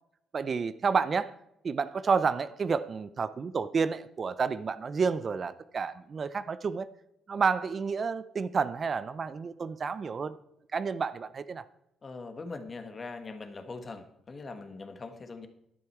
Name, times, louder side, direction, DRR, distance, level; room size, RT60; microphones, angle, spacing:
voice 1, 0.3-1.3 1.6-6.9 7.3-10.4 10.7-11.6, right 5 dB, 40° right, 15 dB, 0.5 m, -30 dB
voice 2, 12.0-15.5, left 3 dB, 35° left, 8 dB, 1.4 m, -42 dB
11.0 x 9.3 x 4.6 m, 0.81 s
cardioid pair, 90°, 0 cm